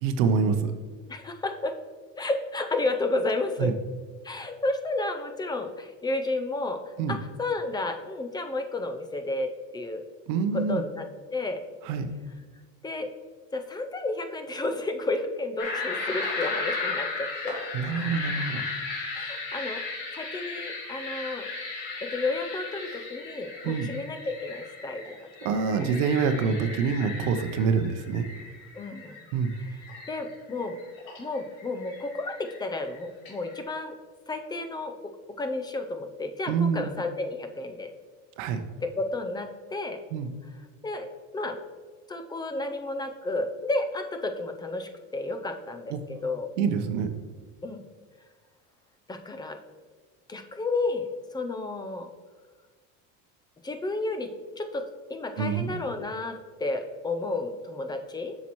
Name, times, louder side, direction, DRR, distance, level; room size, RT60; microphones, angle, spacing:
voice 1, 0.0-0.7 3.6-3.7 7.0-7.2 10.3-10.8 11.8-12.1 17.7-18.6 23.6-23.9 25.4-28.3 29.3-29.5 36.5-36.9 38.4-38.6 40.1-40.3 45.9-46.0 46.6-47.1 55.4-55.8, right 5 dB, 90° right, 7 dB, 0.7 m, -26 dB
voice 2, 1.1-1.7 2.2-3.7 4.2-10.0 10.5-11.1 11.3-11.7 12.8-13.1 13.5-17.6 19.1-21.5 22.0-25.9 28.7-29.2 30.1-30.8 31.2-33.9 34.3-34.9 35.4-37.9 38.8-40.0 40.8-41.1 41.3-41.6 42.1-45.9 46.2-46.5 47.6-47.8 49.1-49.6 50.3-51.1 51.3-52.1 53.6-54.3 54.6-54.8 55.1-58.4, left 2 dB, 10° left, 7 dB, 0.5 m, -32 dB
sound 1, 15.6-33.6, left 3 dB, 80° left, 1.9 m, -36 dB
7.1 x 5.9 x 3.0 m, 1.4 s
cardioid pair, 120°, 37 cm